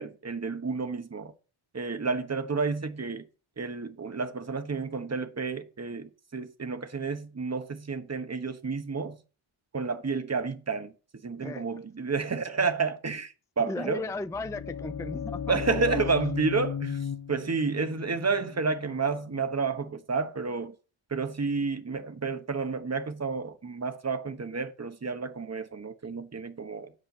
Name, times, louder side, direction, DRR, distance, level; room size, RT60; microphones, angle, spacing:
voice 1, 0.0-1.3 1.7-3.3 3.6-9.2 9.7-10.9 11.2-14.0 15.5-20.7 21.1-26.9, right 4 dB, 30° right, 1.2 m, -30 dB
voice 2, 13.7-16.0, left 3 dB, 5° left, 0.5 m, -36 dB
sound 1, 14.0-19.9, left 7 dB, 35° left, 0.8 m, -36 dB
8.5 x 5.4 x 6.8 m
cardioid pair, 80°, 48 cm